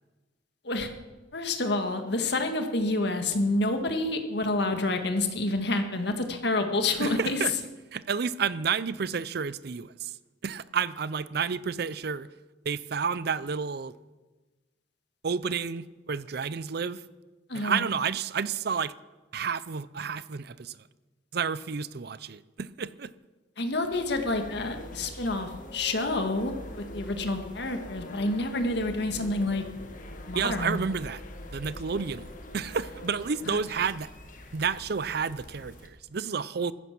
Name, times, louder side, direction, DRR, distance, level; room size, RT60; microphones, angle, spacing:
voice 1, 1.3-7.4 17.5-17.8 23.6-29.6 30.3-30.8 33.5-33.6, left 2 dB, 60° left, 1.8 m, -28 dB
voice 2, 7.0-7.5 7.9-10.2 10.4-12.3 12.7-13.9 15.2-17.0 17.5-18.9 19.3-20.8 21.3-23.1 30.3-31.2 31.5-34.1 34.5-36.7, right 6 dB, 55° right, 0.5 m, -30 dB
sound 1, 23.9-35.9, left 1 dB, 45° left, 1.8 m, -44 dB
15.0 x 14.5 x 6.1 m
head